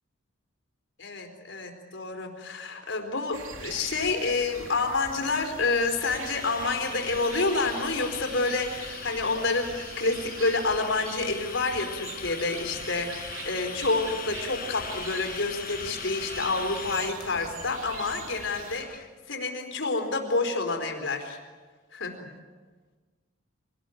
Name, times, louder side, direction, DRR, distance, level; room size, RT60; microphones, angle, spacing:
voice 1, 1.0-21.4 21.9-22.3, left 3 dB, 65° left, 4 dB, 4.3 m, -28 dB
sound 1, 3.3-18.8, right 4 dB, 90° right, 3.1 m, -42 dB
sound 2, 5.6-19.1, left 7 dB, 45° left, 1.7 m, -41 dB
25.5 x 19.0 x 9.3 m, 1.4 s
head